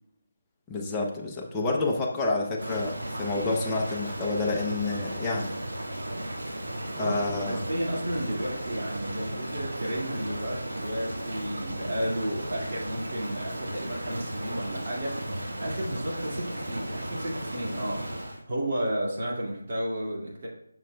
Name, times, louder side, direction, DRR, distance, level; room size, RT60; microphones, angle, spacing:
voice 1, 0.7-5.5 6.9-7.6, left 3 dB, 10° left, -2 dB, 0.6 m, -29 dB
Rain, 2.6-18.4, right 1 dB, 75° right, 1.7 m, -35 dB
voice 2, 7.0-15.2 15.6-20.5, right 1 dB, 45° right, -3 dB, 1.9 m, -32 dB
7.1 x 6.0 x 2.2 m, 0.81 s
figure-of-eight pair, 165°, 0 cm